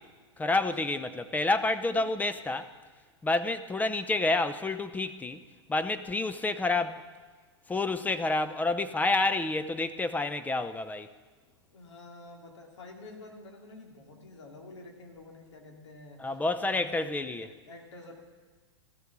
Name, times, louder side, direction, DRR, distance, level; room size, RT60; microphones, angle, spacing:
voice 1, 0.4-2.7 3.2-5.4 5.7-7.1 7.7-11.1 16.2-17.5, left 2 dB, 10° left, 11 dB, 0.6 m, -29 dB
voice 2, 11.3-18.1, left 2 dB, 80° left, 1 dB, 2.9 m, -49 dB
14.0 x 12.5 x 6.1 m, 1.4 s
hypercardioid pair, 110°, 15 cm